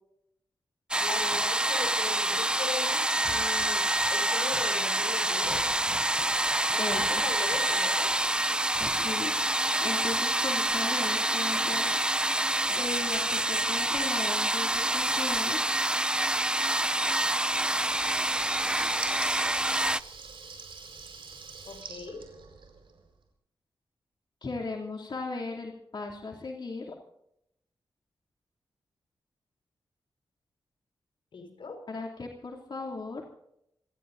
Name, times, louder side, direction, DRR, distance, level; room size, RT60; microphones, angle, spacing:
sound 1, 0.9-20.0, right 1 dB, 10° right, 0.5 m, -27 dB
voice 1, 1.0-3.8 4.1-5.7 6.7-8.1 21.7-22.2 31.3-31.8, left 4 dB, 75° left, 5 dB, 5.3 m, -39 dB
voice 2, 6.8-7.2 8.8-9.3 9.8-11.9 12.7-15.8 24.4-26.9 31.9-33.2, left 3 dB, 60° left, -1 dB, 3.0 m, -37 dB
Water tap faucet / Liquid, 17.5-23.0, right 5 dB, 75° right, 4.7 m, -44 dB
29.5 x 16.0 x 2.7 m, 0.78 s
cardioid pair, 75°, 9 cm